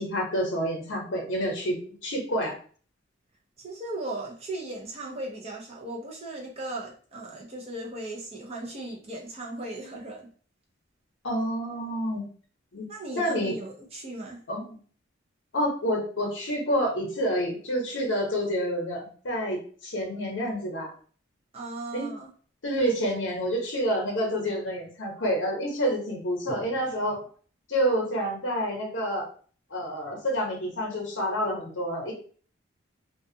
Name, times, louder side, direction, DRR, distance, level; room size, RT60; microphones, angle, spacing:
voice 1, 0.0-1.8 2.0-2.5 11.2-12.2 12.7-12.9 13.2-13.6 14.5-14.8 15.5-20.9 21.9-22.1 22.6-27.2 27.7-29.3 29.7-32.1, equal, 70° left, 0 dB, 0.8 m, -28 dB
voice 2, 3.6-10.3 12.9-14.4 21.5-22.3, right 2 dB, 30° right, -2 dB, 0.6 m, -37 dB
2.4 x 2.3 x 2.7 m, 0.43 s
head